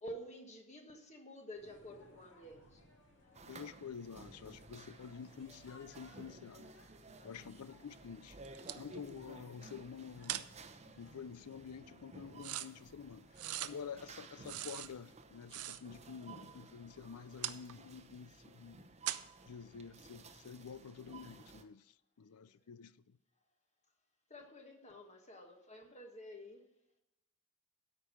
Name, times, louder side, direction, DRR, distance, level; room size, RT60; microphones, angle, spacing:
voice 1, 0.0-2.8 7.2-7.5 22.4-22.5 24.3-26.6, equal, 30° left, 1.4 m, -50 dB
sound 1, 1.5-14.1, left 1 dB, 55° left, 2.8 m, -64 dB
sound 2, 3.3-21.6, right 3 dB, 30° right, 0.8 m, -56 dB
voice 2, 3.5-6.7 7.2-8.4 8.7-10.5 11.0-18.8 19.5-23.2, left 6 dB, 90° left, 0.5 m, -49 dB
sound 3, 8.5-8.8 10.2-10.5 12.4-12.7 13.4-13.7 14.4-14.9 15.2-15.3 15.5-16.0 17.4-17.8 19.1-19.3, right 13 dB, 85° right, 0.5 m, -40 dB
13.0 x 5.4 x 6.3 m
head